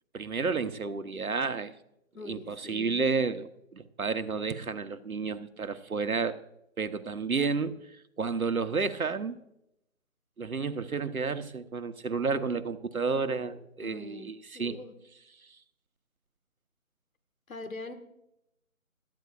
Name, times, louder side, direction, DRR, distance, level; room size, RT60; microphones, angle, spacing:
voice 1, 0.1-1.7 2.2-6.4 6.8-7.8 8.2-9.4 10.4-14.8, right 4 dB, 85° right, 10 dB, 1.2 m, -31 dB
voice 2, 2.1-3.0 13.8-14.3 14.5-14.9 17.5-17.9, left 3 dB, 75° left, 7 dB, 1.8 m, -42 dB
18.0 x 13.5 x 2.5 m, 0.80 s
figure-of-eight pair, 165°, 41 cm